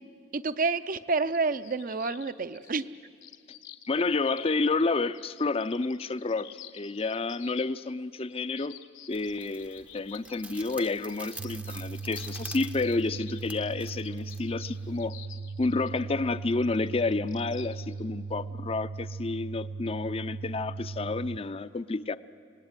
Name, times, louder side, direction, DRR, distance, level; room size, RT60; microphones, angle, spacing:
voice 1, 0.3-2.9, right 4 dB, 45° right, 12 dB, 0.7 m, -29 dB
sound 1, 1.3-18.0, left 11 dB, 80° left, 1.4 m, -50 dB
voice 2, 3.9-6.5 6.7-8.8 9.1-15.1 15.6-22.2, left 3 dB, 30° left, 14 dB, 0.5 m, -30 dB
sound 2, 9.1-15.1, right 2 dB, 5° right, 0.7 m, -47 dB
sound 3, 11.4-21.4, right 4 dB, 85° right, 0.6 m, -38 dB
26.5 x 19.0 x 9.7 m, 2.3 s
head